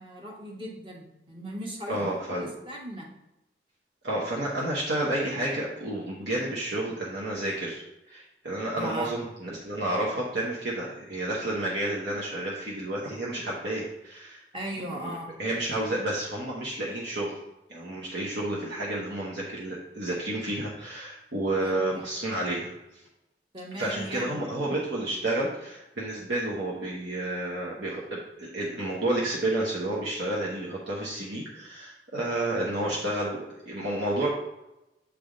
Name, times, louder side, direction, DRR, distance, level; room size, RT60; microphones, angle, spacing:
voice 1, 0.0-3.1 8.8-9.1 14.5-15.3 21.6-22.1 23.5-24.5, equal, 30° right, -1 dB, 1.2 m, -38 dB
voice 2, 1.9-2.5 4.0-14.4 15.0-15.1 15.4-17.3 17.7-22.7 23.8-33.4 33.7-34.3, right 1 dB, 80° right, -5 dB, 1.1 m, -30 dB
8.5 x 3.5 x 3.9 m, 0.92 s
head